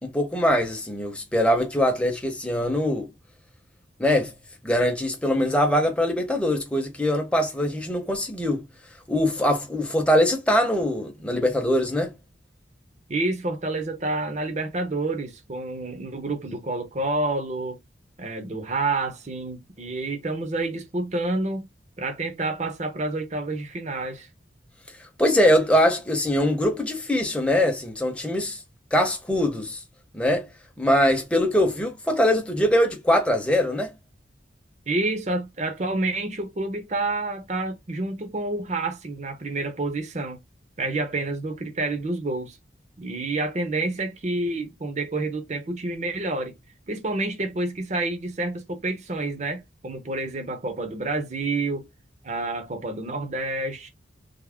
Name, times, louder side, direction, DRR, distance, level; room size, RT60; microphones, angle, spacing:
voice 1, 0.0-3.1 4.0-4.3 4.6-8.6 9.1-12.1 25.2-28.6 28.9-29.8 30.1-30.5 30.8-33.9, equal, 5° left, 0.7 m, -22 dB
voice 2, 13.1-17.8 18.2-21.7 22.0-24.3 34.9-40.4 40.8-42.6 43.0-46.5 46.9-51.8 52.2-53.9, right 2 dB, 40° right, 0.6 m, -28 dB
3.5 x 2.0 x 3.4 m
head